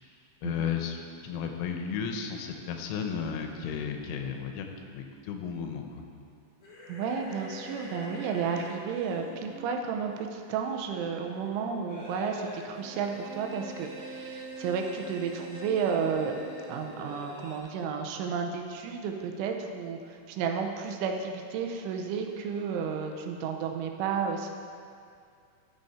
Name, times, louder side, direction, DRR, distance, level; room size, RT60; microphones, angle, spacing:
voice 1, 0.4-6.0, left 7 dB, 90° left, 4 dB, 3.4 m, -34 dB
sound 1, 6.6-8.7, left 2 dB, 55° left, 3.7 m, -45 dB
voice 2, 6.9-16.3 16.7-24.5, right 6 dB, 80° right, 3 dB, 3.1 m, -32 dB
sound 2, 8.9-17.6, equal, 5° left, 0.9 m, -44 dB
13.5 x 6.9 x 4.2 m, 2.3 s
omnidirectional pair, 5.6 m